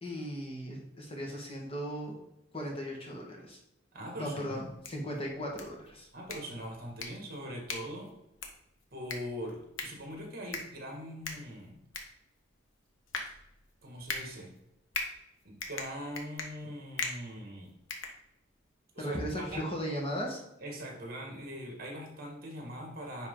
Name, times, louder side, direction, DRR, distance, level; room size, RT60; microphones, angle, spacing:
voice 1, 0.0-2.2 2.5-3.6 4.2-6.1 19.0-20.4, equal, 30° left, -1 dB, 1.5 m, -37 dB
voice 2, 3.9-4.6 6.1-8.1 8.9-11.8 13.8-14.5 15.4-17.7 18.9-19.6 20.6-23.3, equal, 50° right, 0 dB, 1.9 m, -42 dB
sound 1, 4.6-18.7, left 4 dB, 80° left, 1.2 m, -42 dB
9.9 x 4.0 x 3.8 m, 0.84 s
head